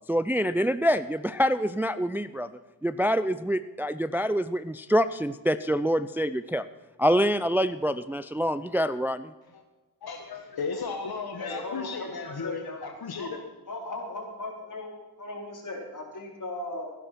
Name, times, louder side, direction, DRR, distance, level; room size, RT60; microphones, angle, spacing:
voice 1, 0.1-2.5 2.8-6.7 7.0-9.3, equal, 5° right, 13 dB, 0.4 m, -26 dB
voice 2, 10.0-13.4, left 5 dB, 75° left, 4 dB, 1.4 m, -35 dB
voice 3, 11.4-12.9 13.2-13.3 13.7-16.9, left 1 dB, 55° left, 0 dB, 3.8 m, -37 dB
15.5 x 10.5 x 5.8 m, 1.2 s
wide cardioid pair, 85°, 38 cm